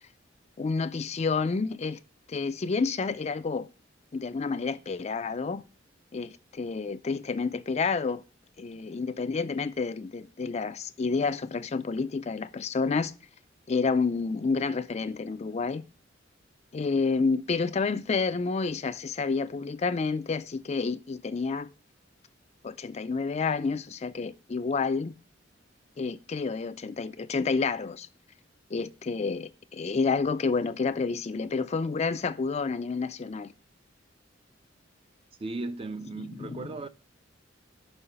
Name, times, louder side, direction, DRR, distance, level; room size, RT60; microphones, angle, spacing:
voice 1, 0.6-2.0 2.3-3.7 4.1-5.6 6.1-8.2 8.6-13.1 13.7-15.8 16.7-21.7 22.6-25.1 26.0-28.1 28.7-33.5 36.4-36.7, left 4 dB, 35° left, 0.4 m, -29 dB
voice 2, 35.4-36.9, right 2 dB, 30° right, 0.5 m, -36 dB
5.7 x 5.5 x 6.8 m
head